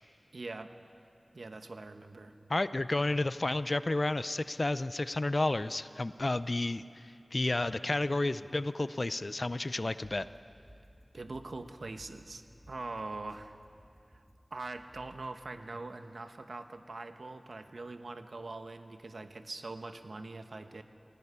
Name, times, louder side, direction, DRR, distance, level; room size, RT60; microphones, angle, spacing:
voice 1, 0.3-0.7 1.3-2.3 11.1-13.6 14.5-20.8, right 3 dB, 85° right, 8 dB, 1.1 m, -43 dB
voice 2, 2.5-7.0 7.3-10.3, left 2 dB, 50° left, 14 dB, 0.5 m, -31 dB
sound 1, 10.0-15.3, equal, 30° right, 2.3 m, -59 dB
18.0 x 17.0 x 9.7 m, 2.5 s
wide cardioid pair, 55°, 0 cm